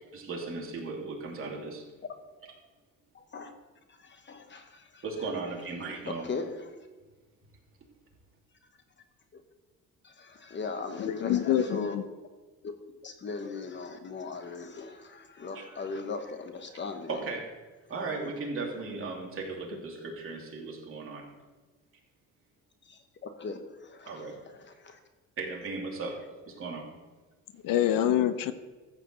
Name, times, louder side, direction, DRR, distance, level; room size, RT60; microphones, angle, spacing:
voice 1, 0.1-1.9 5.0-6.3 15.5-15.6 17.1-17.5 17.9-21.3 24.0-24.4 25.4-26.9, right 3 dB, 40° right, 2.9 m, -36 dB
voice 2, 3.1-3.5 3.9-5.0 6.1-6.7 9.3-9.4 10.0-12.0 13.0-17.2 19.7-19.8 22.8-25.0, left 4 dB, 35° left, 1.1 m, -39 dB
voice 3, 11.0-12.0 27.6-28.5, left 11 dB, 75° left, 0.8 m, -26 dB
14.0 x 5.1 x 7.6 m
cardioid pair, 135°, 33 cm